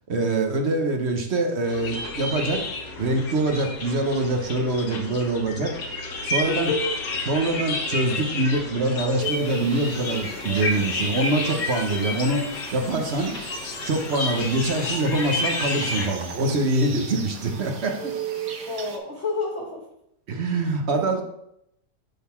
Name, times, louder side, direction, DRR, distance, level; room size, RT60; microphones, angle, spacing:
voice 1, 0.1-2.6 3.0-5.7 6.2-6.7 7.3-12.4 12.7-13.3 13.9-18.1 20.3-21.2, right 2 dB, 45° right, 4 dB, 1.0 m, -24 dB
sound 1, 1.7-16.1, left 2 dB, 70° left, 1.7 m, -31 dB
voice 2, 6.5-6.9 18.7-19.9 20.6-20.7, left 3 dB, 45° left, -2 dB, 1.3 m, -29 dB
sound 2, 9.2-19.0, right 8 dB, 85° right, 1.6 m, -37 dB
10.5 x 4.0 x 4.4 m, 0.77 s
omnidirectional pair, 1.8 m